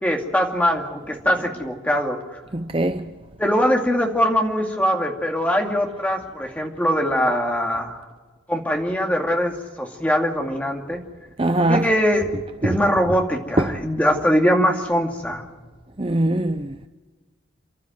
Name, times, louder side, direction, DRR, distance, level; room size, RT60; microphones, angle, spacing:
voice 1, 0.0-2.2 3.4-8.0 8.5-11.0 11.7-12.3 12.6-15.4, equal, 10° left, 2.4 m, -22 dB
voice 2, 2.5-3.0 11.4-11.9 12.6-12.8 13.6-13.7 16.0-16.7, right 1 dB, 25° right, 0.7 m, -21 dB
29.0 x 12.5 x 9.3 m
head